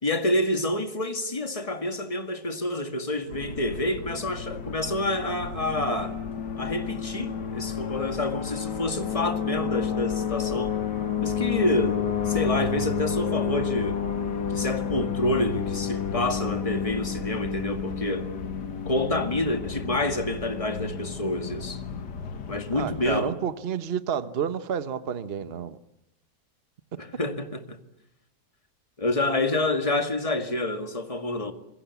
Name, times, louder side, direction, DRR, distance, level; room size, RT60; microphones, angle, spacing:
voice 1, 0.0-6.2 6.6-10.8 11.2-14.0 14.5-18.3 18.9-21.8 22.5-23.4 27.0-27.8 29.0-31.5, left 1 dB, 20° left, 2.0 m, -28 dB
sound 1, 3.3-23.2, left 7 dB, 70° left, 2.1 m, -31 dB
voice 2, 22.8-25.8, right 8 dB, 40° right, 1.1 m, -30 dB
27.0 x 21.5 x 8.3 m
omnidirectional pair, 1.9 m